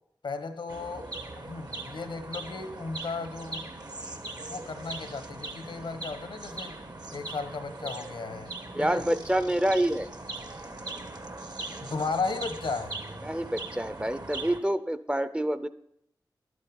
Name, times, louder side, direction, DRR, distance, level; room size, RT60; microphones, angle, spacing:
voice 1, 0.2-1.1 1.4-3.7 4.5-6.8 7.1-8.5 8.8-9.1 11.8-13.0, left 4 dB, 80° left, 9 dB, 1.1 m, -35 dB
sound 1, 0.7-14.6, right 2 dB, 55° right, 1.4 m, -40 dB
voice 2, 8.7-10.1 13.2-15.7, right 1 dB, 15° right, 12 dB, 0.6 m, -27 dB
11.5 x 8.4 x 5.3 m, 0.72 s
cardioid pair, 50°, 8 cm